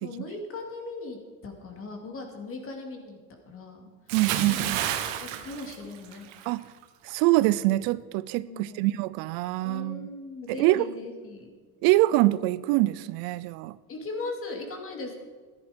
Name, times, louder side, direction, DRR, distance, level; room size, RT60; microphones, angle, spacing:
voice 1, 0.0-1.2 1.4-3.2 3.5-3.9 4.4-4.7 5.2-6.3 8.5-8.8 9.6-11.5 13.9-15.2, left 3 dB, 35° left, 2.5 m, -38 dB
voice 2, 4.1-4.8 6.5-6.7 7.0-10.1 10.5-10.9 11.8-13.8, right 17 dB, 70° right, 0.5 m, -25 dB
Bathtub (filling or washing) / Splash splatter, 4.1-6.5 6.8-7.1, right 11 dB, 85° right, 1.2 m, -31 dB
14.0 x 11.0 x 5.1 m
cardioid pair, 135°, 38 cm